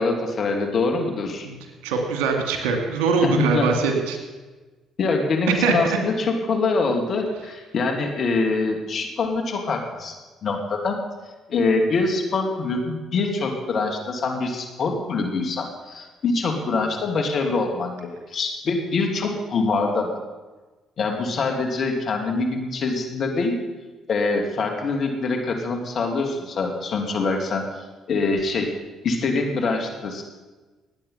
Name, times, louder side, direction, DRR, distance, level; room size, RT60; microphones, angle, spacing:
voice 1, 0.0-1.5 3.2-3.7 5.0-10.1 10.4-11.0 11.5-20.1 21.0-23.6 24.1-27.6 28.1-28.7 29.0-30.2, left 3 dB, 55° left, 2 dB, 2.7 m, -24 dB
voice 2, 1.8-4.2 5.6-6.0, right 4 dB, 75° right, 3 dB, 2.4 m, -22 dB
19.5 x 8.7 x 5.8 m, 1.3 s
hypercardioid pair, 50°, 0 cm